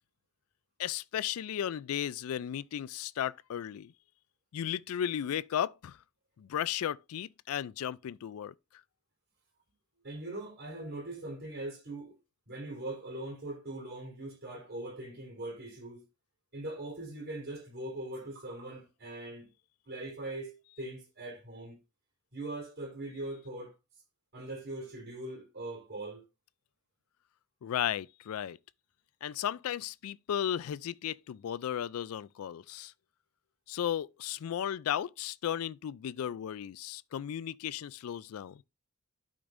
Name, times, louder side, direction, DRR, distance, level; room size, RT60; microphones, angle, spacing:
voice 1, 0.8-3.9 4.5-6.0 6.4-8.5 27.6-28.6 29.2-32.9 33.7-38.6, left 10 dB, 70° left, 0.3 m, -35 dB
voice 2, 10.0-12.1 12.5-16.1 16.5-19.5 19.9-21.8 22.3-23.7 24.3-26.2, right 2 dB, 50° right, 3.9 m, -41 dB
12.0 x 5.2 x 2.6 m
head